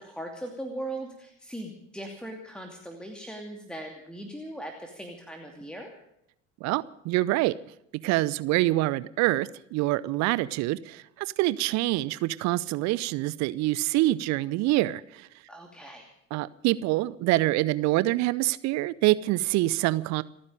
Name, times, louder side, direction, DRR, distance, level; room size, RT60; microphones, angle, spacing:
voice 1, 0.0-5.9 15.5-16.1, right 1 dB, ahead, 3 dB, 2.6 m, -39 dB
voice 2, 6.6-7.5 8.0-15.3 16.3-20.2, right 17 dB, 45° right, 18 dB, 0.7 m, -26 dB
29.0 x 9.8 x 5.1 m, 0.78 s
figure-of-eight pair, 65°, 40 cm